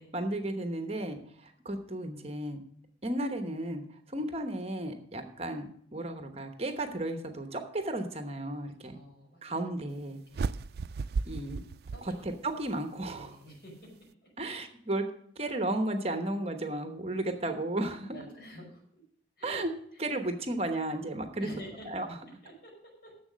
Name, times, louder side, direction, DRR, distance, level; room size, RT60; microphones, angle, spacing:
voice 1, 0.0-2.6 3.0-3.8 4.1-9.0 9.4-10.2 11.3-11.6 12.0-13.4 14.4-15.0 15.4-18.2 19.4-19.7 20.0-21.5 21.8-22.2, right 1 dB, 35° right, 6 dB, 1.1 m, -34 dB
voice 2, 8.8-9.4 10.3-10.8 11.2-11.3 11.9-12.3 13.1-13.9 14.2-14.6 18.1-18.8 19.4-19.6 19.9-20.0 21.4-21.9 22.4-22.7 23.0-23.1, equal, 60° left, -1 dB, 5.3 m, -49 dB
sound 1, 10.3-12.7, right 4 dB, 55° right, 0.3 m, -35 dB
11.0 x 7.4 x 6.3 m, 0.65 s
head